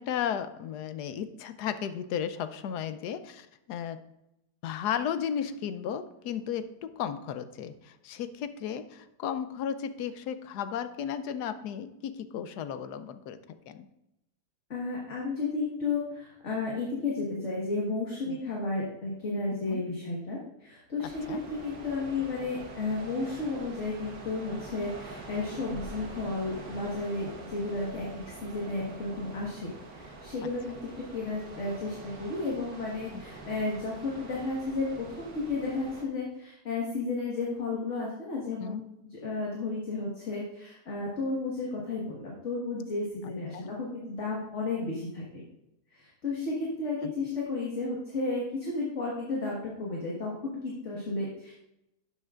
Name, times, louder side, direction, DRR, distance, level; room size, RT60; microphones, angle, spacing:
voice 1, 0.0-4.0 4.6-13.9 18.3-18.4 19.7-19.8 21.3-21.4 28.2-28.3 33.1-33.3 38.6-38.8 43.2-43.7 47.0-47.1, left 8 dB, 80° left, 11 dB, 1.2 m, -35 dB
voice 2, 14.7-38.8 39.1-45.4 45.9-51.5, left 3 dB, 45° left, -4 dB, 1.8 m, -33 dB
sound 1, 21.0-36.0, right 2 dB, 60° right, 1.7 m, -45 dB
12.0 x 7.8 x 2.5 m, 0.86 s
omnidirectional pair, 1.8 m